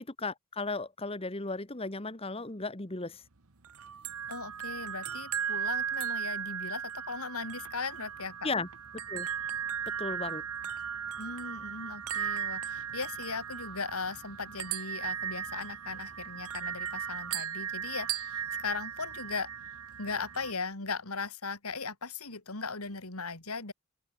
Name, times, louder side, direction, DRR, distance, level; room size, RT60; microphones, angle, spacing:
voice 1, 0.0-3.2 8.4-8.7 9.1-9.3 10.0-10.4, left 3 dB, 25° left, 1.4 m, -35 dB
sound 1, 3.6-20.5, right 8 dB, 80° right, 1.4 m, -37 dB
voice 2, 4.3-8.5 11.2-19.5 20.0-23.7, left 4 dB, 85° left, 3.7 m, -38 dB
open air
head